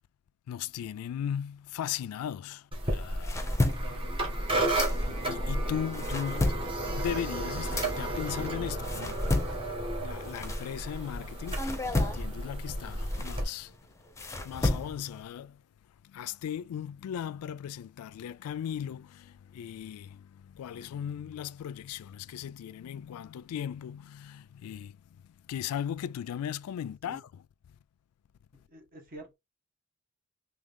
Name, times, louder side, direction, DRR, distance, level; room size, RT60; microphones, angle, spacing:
voice 1, 0.5-3.5 5.1-6.5 6.9-9.2 10.0-13.7 14.4-15.6 16.0-27.4, left 9 dB, 70° left, 0.3 m, -37 dB
sound 1, 2.7-13.4, right 1 dB, 25° right, 1.2 m, -32 dB
sound 2, 2.9-5.4 5.8-11.1 11.5-15.2, left 2 dB, 15° left, 0.7 m, -33 dB
voice 2, 3.4-4.4 26.8-27.2 28.6-29.3, right 2 dB, 40° right, 1.5 m, -49 dB
sound 3, 5.9-9.8, right 1 dB, 60° right, 1.0 m, -52 dB
3.6 x 2.9 x 3.5 m
head